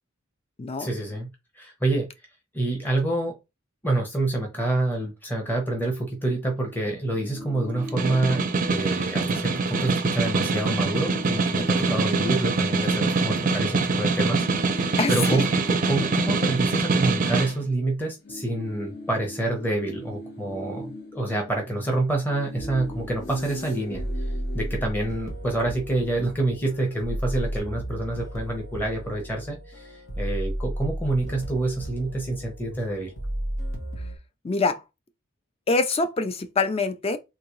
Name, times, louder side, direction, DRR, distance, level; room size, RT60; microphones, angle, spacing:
voice 1, 0.8-1.3 1.5-2.1 2.5-3.3 3.8-33.1, right 2 dB, 10° left, 0.8 m, -27 dB
sound 1, 7.0-9.6 9.9-10.1 10.3-13.7 14.3-17.8 18.1-25.7, left 1 dB, 50° left, 0.8 m, -41 dB
Snare drum, 7.8-17.5, right 4 dB, 40° right, 0.5 m, -24 dB
voice 2, 15.0-15.4 34.4-34.8 35.7-37.2, left 3 dB, 30° left, 0.5 m, -24 dB
sound 2, 22.6-34.2, right 1 dB, 70° left, 1.2 m, -34 dB
3.7 x 2.7 x 3.1 m
head